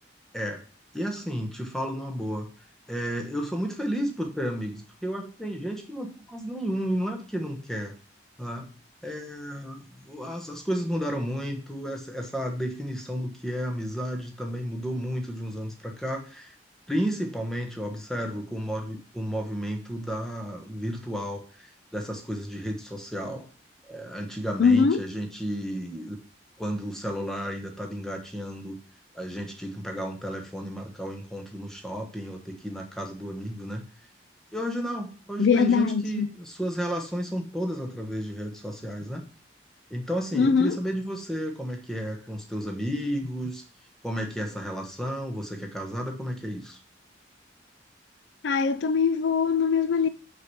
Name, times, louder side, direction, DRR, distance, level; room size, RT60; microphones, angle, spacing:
voice 1, 0.9-2.5 2.9-7.9 8.4-8.7 9.0-16.5 16.9-23.5 23.9-26.2 26.6-28.8 29.1-33.8 34.5-39.2 39.9-43.6 44.0-46.8, equal, 5° left, 1.2 m, -32 dB
voice 2, 24.6-25.0 35.4-36.3 40.3-40.8 48.4-50.1, left 5 dB, 75° left, 0.4 m, -22 dB
5.8 x 4.9 x 6.2 m
head